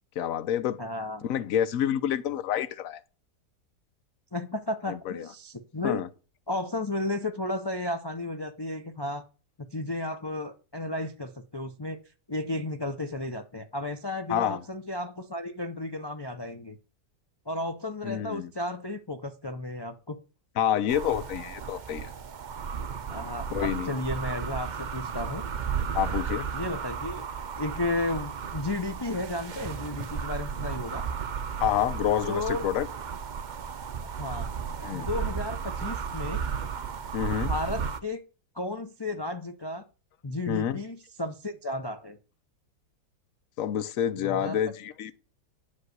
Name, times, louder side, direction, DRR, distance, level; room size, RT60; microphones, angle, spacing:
voice 1, 0.2-0.8 1.2-3.0 4.9-5.3 5.8-6.1 14.3-14.6 18.0-18.5 20.6-22.1 23.5-23.9 25.9-26.5 31.6-32.9 34.8-35.1 37.1-37.5 40.5-40.8 43.6-45.1, left 10 dB, 60° left, 1.1 m, -28 dB
voice 2, 0.8-1.3 4.3-6.0 6.5-9.2 9.7-12.0 12.3-16.8 17.5-20.2 23.1-25.4 26.5-27.3 27.6-31.1 32.3-32.6 34.0-34.5 34.9-36.4 37.4-38.2 38.5-39.8 40.2-42.2 44.2-44.6, left 2 dB, 35° left, 0.3 m, -33 dB
sound 1, 20.9-38.0, right 7 dB, 85° right, 0.4 m, -34 dB
10.5 x 5.3 x 7.9 m
omnidirectional pair, 1.8 m